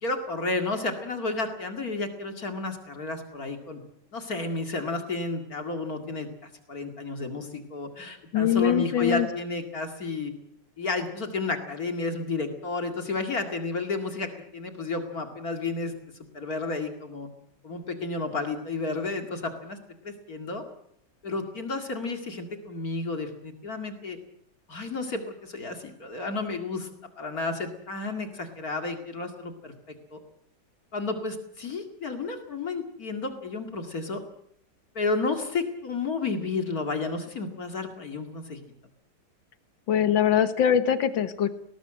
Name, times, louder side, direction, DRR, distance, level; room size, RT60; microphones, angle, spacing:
voice 1, 0.0-3.8 4.1-10.3 10.8-15.9 16.3-17.3 17.6-19.8 20.0-20.6 21.2-24.2 24.7-26.9 27.2-30.2 30.9-34.2 34.9-38.6, left 3 dB, 50° left, 6 dB, 2.6 m, -32 dB
voice 2, 8.3-9.3 39.9-41.5, left 9 dB, 90° left, 11 dB, 1.9 m, -22 dB
20.0 x 19.0 x 7.6 m, 0.68 s
omnidirectional pair, 2.0 m